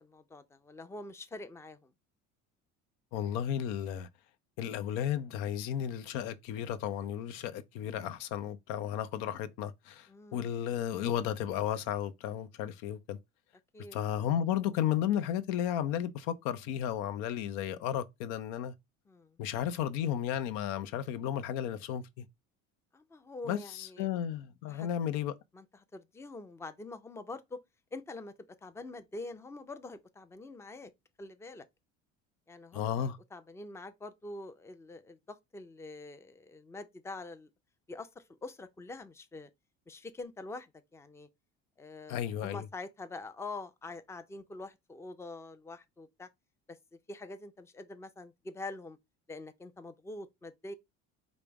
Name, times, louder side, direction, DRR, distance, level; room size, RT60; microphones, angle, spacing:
voice 1, 0.0-1.9 10.1-10.4 13.7-14.0 19.1-19.4 22.9-24.1 24.7-24.9 25.5-27.6 27.9-30.9 31.2-31.6 32.5-37.5 37.9-39.5 39.9-41.3 41.8-46.3 46.7-49.0 49.3-50.7, left 2 dB, 10° left, 0.4 m, -45 dB
voice 2, 3.1-4.1 4.6-13.2 13.9-18.7 19.4-22.3 23.5-25.3 32.7-33.2 42.1-42.6, left 10 dB, 90° left, 0.6 m, -33 dB
5.1 x 2.1 x 4.6 m
cardioid pair, 105°, 31 cm